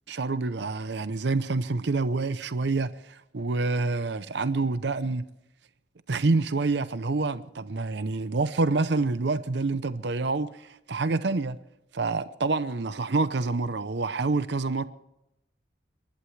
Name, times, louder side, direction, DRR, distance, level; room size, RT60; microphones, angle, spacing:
voice 1, 0.1-5.2 6.1-11.6 11.9-14.8, right 3 dB, 65° right, 0.7 m, -27 dB
29.5 x 11.5 x 3.3 m
head